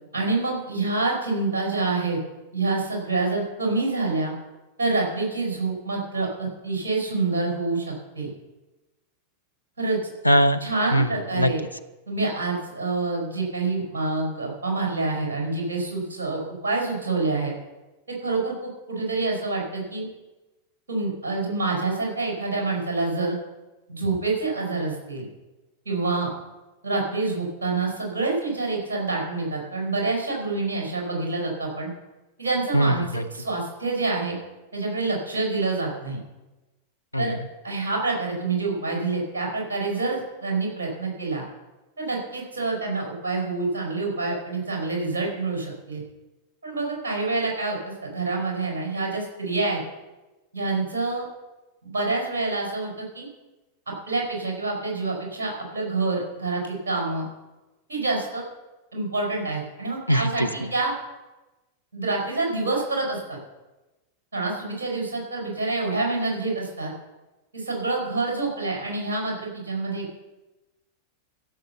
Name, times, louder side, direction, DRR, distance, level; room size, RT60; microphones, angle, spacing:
voice 1, 0.1-2.2 2.5-4.3 4.8-8.3 9.8-10.0 10.6-11.6 12.1-17.5 18.1-20.1 20.9-23.4 23.9-25.3 25.8-26.3 26.8-31.9 32.4-34.4 34.7-36.2 37.2-37.3 37.6-41.4 42.0-46.0 46.6-49.8 50.5-51.2 51.8-53.3 54.1-57.3 57.9-58.4 58.9-60.9 61.9-63.4 64.3-66.9 67.5-70.1, right 3 dB, 70° right, -1 dB, 5.1 m, -27 dB
voice 2, 10.2-10.6 10.9-11.1 11.4-11.5 32.7-33.2 37.1-37.3 60.1-60.5, equal, 85° left, 10 dB, 0.6 m, -20 dB
15.0 x 6.8 x 6.9 m, 1.1 s
figure-of-eight pair, 90°, 0 cm